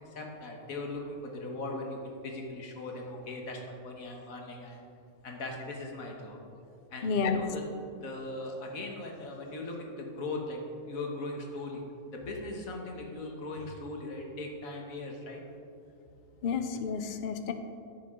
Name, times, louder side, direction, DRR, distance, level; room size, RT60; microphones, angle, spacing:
voice 1, 0.2-4.8 5.2-6.4 6.9-7.7 8.0-10.6 10.9-11.8 12.1-15.4 16.4-16.6, left 2 dB, 85° left, 1 dB, 1.7 m, -39 dB
voice 2, 7.0-7.4 16.4-17.5, left 5 dB, 55° left, 8 dB, 0.6 m, -30 dB
10.5 x 8.3 x 3.7 m, 2.6 s
omnidirectional pair, 1.4 m